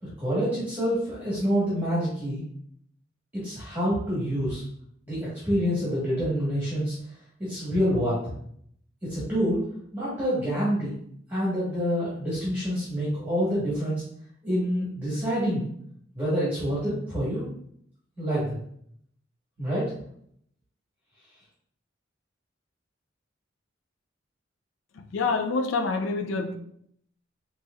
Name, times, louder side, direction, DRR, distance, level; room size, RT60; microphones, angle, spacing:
voice 1, 0.0-2.4 3.3-4.6 5.1-6.9 7.4-8.2 9.0-9.6 9.9-10.9 11.3-14.0 14.4-15.7 16.1-17.4 18.2-18.6 19.6-19.9, equal, 10° right, -10 dB, 1.3 m, -27 dB
voice 2, 24.9-26.6, left 4 dB, 80° left, 6 dB, 0.4 m, -27 dB
4.2 x 2.9 x 2.3 m, 0.68 s
head